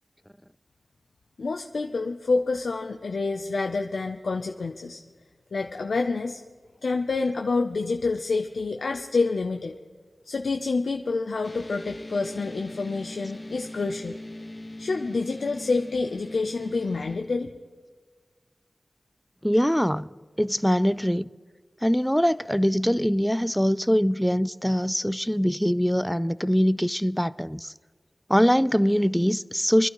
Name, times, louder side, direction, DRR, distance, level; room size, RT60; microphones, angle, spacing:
voice 1, 1.4-5.0 5.5-6.4 6.8-9.7 10.3-14.2 14.8-17.5, left 3 dB, 85° left, 0.5 m, -27 dB
sound 1, 11.4-17.2, left 1 dB, 30° left, 1.2 m, -40 dB
voice 2, 19.4-21.3 21.8-27.7 28.3-29.9, equal, 5° left, 0.3 m, -23 dB
26.5 x 11.5 x 3.0 m
wide cardioid pair, 60°, 0 cm